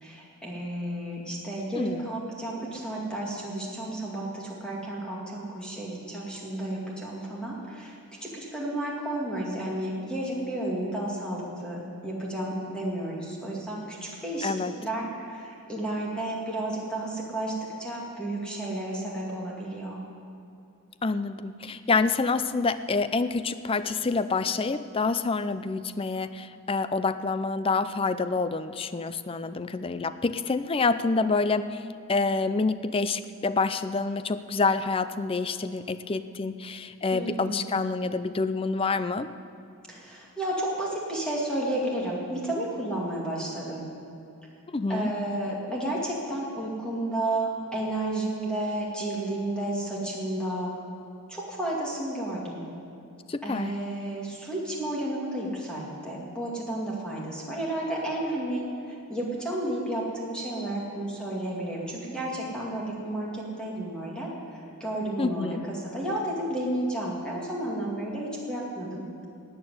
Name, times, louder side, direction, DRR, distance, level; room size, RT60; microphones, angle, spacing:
voice 1, 0.0-7.9 8.2-14.5 14.8-20.0 37.1-37.7 39.9-43.9 44.9-50.8 51.3-52.6 53.4-58.6 59.1-64.3 64.8-69.0, right 1 dB, 5° left, -5 dB, 2.3 m, -32 dB
voice 2, 1.8-2.1 14.4-14.7 21.0-31.8 32.1-39.3 44.7-45.1 53.3-53.8 65.2-65.7, left 4 dB, 25° left, 13 dB, 0.4 m, -27 dB
13.0 x 8.9 x 9.5 m, 2.7 s
head